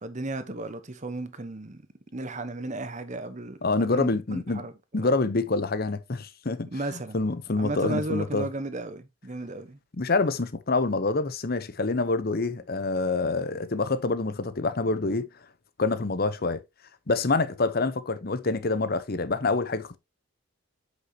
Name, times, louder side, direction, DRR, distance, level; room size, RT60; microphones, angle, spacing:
voice 1, 0.0-1.8 2.1-4.7 5.0-5.1 6.7-7.2 7.6-9.8, right 2 dB, 35° right, 1.0 m, -34 dB
voice 2, 3.6-4.6 4.9-8.5 10.0-15.3 15.8-16.6 17.1-20.0, left 3 dB, 45° left, 0.8 m, -26 dB
8.2 x 6.2 x 2.9 m
head